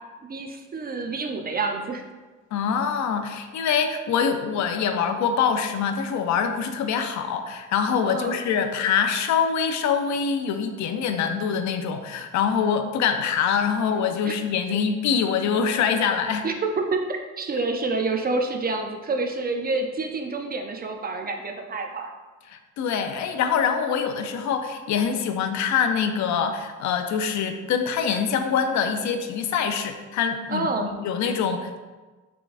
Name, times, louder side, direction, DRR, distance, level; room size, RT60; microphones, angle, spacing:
voice 1, 0.2-2.0 8.1-8.3 14.2-14.3 14.7-14.8 16.4-22.1 30.5-30.9, right 3 dB, 30° right, 4 dB, 0.4 m, -28 dB
voice 2, 2.5-16.5 22.5-31.8, left 7 dB, 70° left, 7 dB, 0.5 m, -24 dB
3.9 x 3.8 x 2.4 m, 1.3 s
cardioid pair, 90°, 30 cm